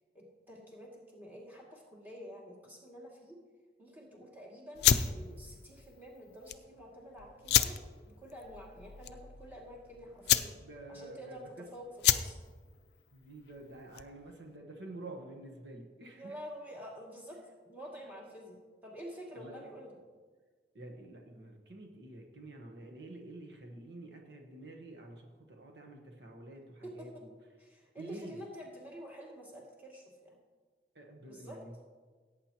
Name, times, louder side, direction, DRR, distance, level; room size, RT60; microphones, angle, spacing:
voice 1, 0.1-3.4 3.8-10.6 10.9-11.9 12.1-12.4 16.2-17.4 17.6-20.0 26.8-27.1 27.6-30.4 31.3-31.6, equal, 10° right, -4 dB, 2.3 m, -49 dB
sound 1, 4.7-14.3, left 10 dB, 65° left, 0.4 m, -32 dB
voice 2, 10.6-11.7 13.1-16.4 19.3-19.7 20.7-27.3 28.0-28.4 30.9-31.8, right 2 dB, 70° right, 2 dB, 1.2 m, -48 dB
17.5 x 8.8 x 3.0 m, 1.5 s
head